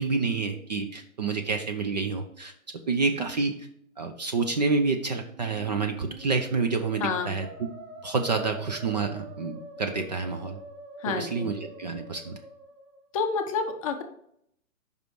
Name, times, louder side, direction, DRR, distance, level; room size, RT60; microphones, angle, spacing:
voice 1, 0.0-2.5 2.9-3.7 4.0-7.5 8.0-10.6 11.1-12.4, right 4 dB, 35° right, 5 dB, 0.4 m, -28 dB
Musical instrument, 5.0-13.1, right 2 dB, 55° right, 1.5 m, -46 dB
voice 2, 7.0-7.4 11.0-11.5 13.1-14.0, left 5 dB, 25° left, 5 dB, 0.5 m, -29 dB
5.3 x 4.9 x 4.5 m, 0.70 s
hypercardioid pair, 130°, 43 cm